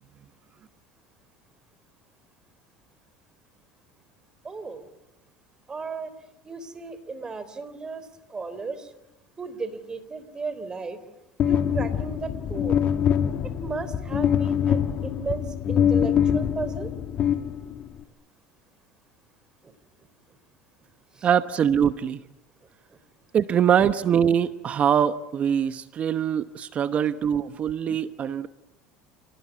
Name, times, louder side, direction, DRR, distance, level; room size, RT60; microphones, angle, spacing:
voice 1, 4.4-4.8 5.7-6.1 6.4-8.9 9.4-11.0 11.5-12.8 13.6-16.9 19.6-19.7 21.1-21.3, right 4 dB, 25° right, 12 dB, 3.7 m, -35 dB
sound 1, 11.4-18.0, left 9 dB, 45° left, 2.2 m, -24 dB
voice 2, 21.2-22.2 23.3-28.5, right 8 dB, 40° right, 13 dB, 1.0 m, -23 dB
28.0 x 19.5 x 9.4 m, 0.92 s
supercardioid pair, 95°, 3 cm